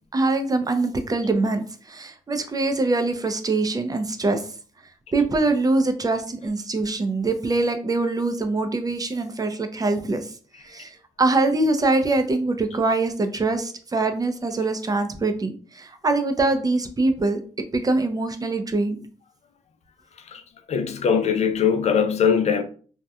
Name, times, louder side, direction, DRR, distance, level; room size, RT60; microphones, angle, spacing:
voice 1, 0.1-4.4 5.1-10.3 10.6-19.0, right 2 dB, 30° right, 0.5 m, -23 dB
voice 2, 20.7-22.6, left 7 dB, 55° left, 0.4 m, -21 dB
2.8 x 2.2 x 2.3 m
cardioid pair, 70°, 13 cm